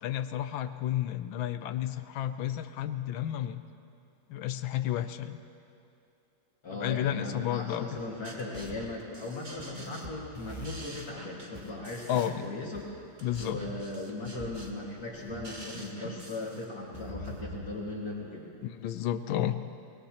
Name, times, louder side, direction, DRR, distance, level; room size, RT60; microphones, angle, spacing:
voice 1, 0.0-3.6 4.3-5.4 6.7-8.0 12.1-12.5 13.2-13.6 18.6-19.6, left 11 dB, 75° left, 11 dB, 1.3 m, -31 dB
voice 2, 6.6-13.0 13.4-18.5, left 2 dB, 45° left, -3 dB, 2.2 m, -38 dB
sound 1, 8.0-17.5, right 1 dB, 25° right, 1.4 m, -44 dB
24.0 x 20.5 x 2.9 m, 2.6 s
omnidirectional pair, 2.4 m